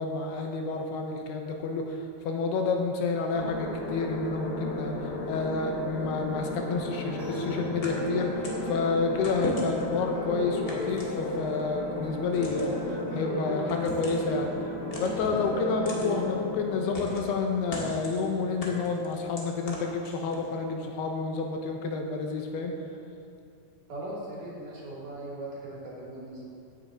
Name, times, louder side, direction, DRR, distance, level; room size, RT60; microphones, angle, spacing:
voice 1, 0.0-2.0 2.2-5.0 5.3-12.8 13.1-14.5 15.0-22.7, left 4 dB, 90° left, 2 dB, 3.0 m, -29 dB
sound 1, 3.3-17.1, left 2 dB, 65° left, 2.8 m, -35 dB
sound 2, 6.7-16.2, right 1 dB, 35° right, 1.8 m, -37 dB
sound 3, 7.8-8.7 9.2-9.9 10.7-11.6 12.3-12.8 13.7-14.3 14.9-15.4 15.8-16.1 16.9-17.3 17.7-18.2 18.6-20.5, left 1 dB, 45° left, 1.2 m, -38 dB
voice 2, 23.9-26.5, right 1 dB, 55° right, -5 dB, 3.9 m, -39 dB
16.0 x 9.1 x 3.8 m, 2.6 s
omnidirectional pair, 4.5 m